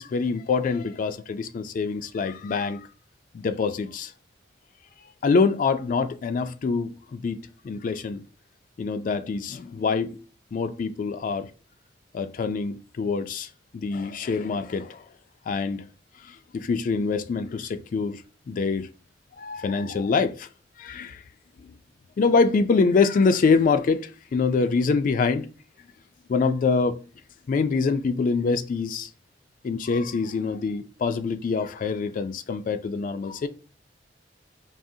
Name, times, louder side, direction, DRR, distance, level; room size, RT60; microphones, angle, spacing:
voice 1, 0.0-2.8 3.3-4.1 5.2-7.4 7.6-8.2 8.8-10.2 10.5-11.5 12.1-13.5 13.7-15.0 15.5-15.8 16.2-18.2 18.5-18.9 19.4-20.5 20.8-21.2 22.2-25.5 26.3-27.0 27.5-29.1 29.6-33.5, left 4 dB, 45° left, 0.3 m, -25 dB
4.8 x 2.8 x 2.6 m
head